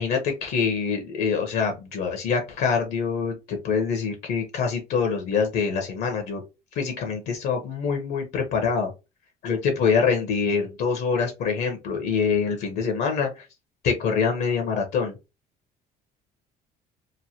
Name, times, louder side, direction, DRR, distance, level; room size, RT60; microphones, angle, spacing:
voice 1, 0.0-6.4 6.7-8.9 9.4-13.5 13.8-15.2, left 5 dB, 65° left, 4 dB, 0.8 m, -25 dB
3.1 x 2.1 x 2.8 m, 0.26 s
cardioid pair, 105°, 18 cm